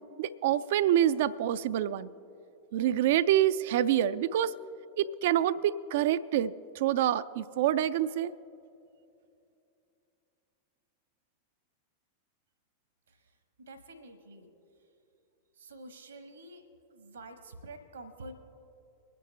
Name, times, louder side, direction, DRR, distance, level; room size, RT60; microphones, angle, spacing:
voice 1, 0.2-2.1 2.7-4.5 5.0-8.3, right 11 dB, 55° right, 15 dB, 0.4 m, -27 dB
voice 2, 13.7-14.5 15.6-16.6 16.9-18.3, right 2 dB, 80° right, 8 dB, 1.1 m, -47 dB
23.0 x 10.0 x 3.3 m, 2.7 s
figure-of-eight pair, 90°, 0 cm